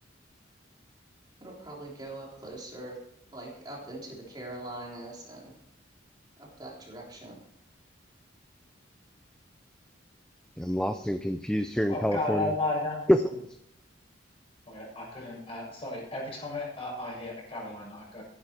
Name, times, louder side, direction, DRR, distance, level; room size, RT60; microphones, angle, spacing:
voice 1, 1.4-3.0 3.3-5.5 6.4-7.4, right 1 dB, 20° right, -3 dB, 3.6 m, -42 dB
voice 2, 10.6-12.5 13.1-13.2, equal, 5° left, 8 dB, 0.5 m, -26 dB
voice 3, 11.9-13.0 13.2-13.4 14.7-18.2, left 2 dB, 30° left, -3 dB, 6.9 m, -34 dB
14.5 x 11.5 x 4.5 m, 0.77 s
head